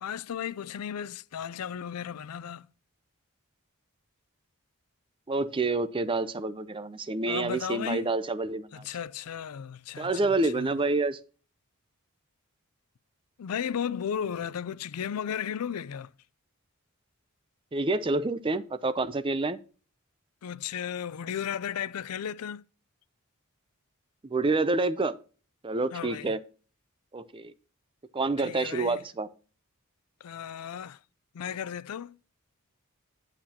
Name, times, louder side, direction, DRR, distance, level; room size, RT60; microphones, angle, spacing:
voice 1, 0.0-2.7 7.3-8.1 8.7-10.8 13.4-16.1 20.4-22.6 25.9-26.3 28.4-29.0 30.2-31.0 31.3-32.2, left 8 dB, 90° left, 0.4 m, -35 dB
voice 2, 5.3-8.8 10.0-11.2 17.7-19.6 24.2-25.2 25.6-26.4 27.1-27.5 28.1-29.3, right 3 dB, 25° right, 0.5 m, -28 dB
8.9 x 7.5 x 2.8 m
head